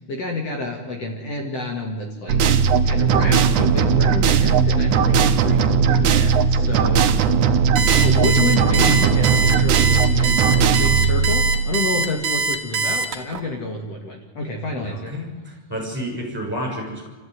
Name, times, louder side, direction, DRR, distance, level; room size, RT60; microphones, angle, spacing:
voice 1, 0.1-2.4 2.8-7.0 7.8-10.5 10.8-15.1, left 3 dB, 55° left, 2 dB, 3.0 m, -28 dB
sound 1, 2.3-12.2, right 6 dB, 75° right, 2.5 m, -18 dB
Alarm, 7.8-13.4, right 3 dB, 50° right, 2.6 m, -23 dB
voice 2, 14.8-17.1, equal, 5° right, 0 dB, 6.7 m, -30 dB
29.0 x 14.5 x 9.5 m, 1.3 s
omnidirectional pair, 3.5 m